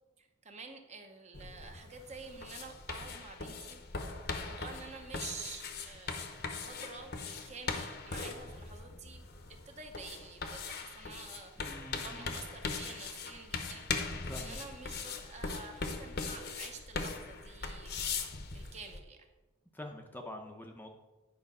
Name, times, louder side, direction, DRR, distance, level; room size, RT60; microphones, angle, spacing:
voice 1, 0.2-3.8 4.1-9.2 9.5-18.0 18.5-19.3, right 4 dB, 30° right, 5 dB, 0.8 m, -49 dB
sound 1, 1.3-19.0, left 4 dB, 50° left, 0.9 m, -40 dB
voice 2, 11.6-12.4 14.3-14.6 19.7-20.9, left 1 dB, 10° left, 2 dB, 0.6 m, -45 dB
9.6 x 5.2 x 5.4 m, 1.2 s
head